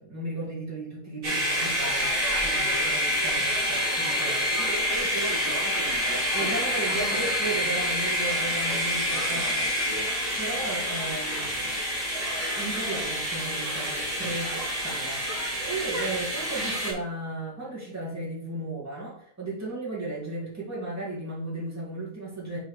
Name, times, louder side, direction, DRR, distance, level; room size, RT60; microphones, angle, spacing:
voice 1, 0.0-4.7 6.3-9.7 10.4-11.7 12.5-22.6, right 2 dB, 10° right, -5 dB, 2.1 m, -35 dB
sound 1, 1.2-16.9, equal, 35° right, 2.3 m, -27 dB
voice 2, 4.5-7.6 9.1-10.1, right 1 dB, 60° right, -3 dB, 2.3 m, -38 dB
6.0 x 3.8 x 4.8 m, 0.65 s
omnidirectional pair, 1.6 m